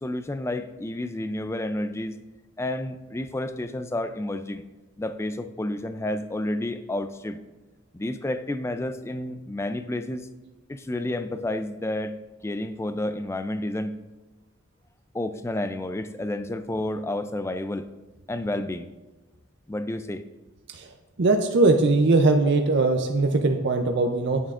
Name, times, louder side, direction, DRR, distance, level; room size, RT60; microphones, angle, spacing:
voice 1, 0.0-2.1 2.6-4.6 5.0-7.4 7.9-10.3 10.7-12.2 12.4-14.0 15.1-17.9 18.3-18.9 19.7-20.2, left 1 dB, 10° left, 10 dB, 0.3 m, -30 dB
voice 2, 21.2-24.4, right 3 dB, 50° right, 4 dB, 0.5 m, -20 dB
11.0 x 8.8 x 2.5 m, 1.2 s
head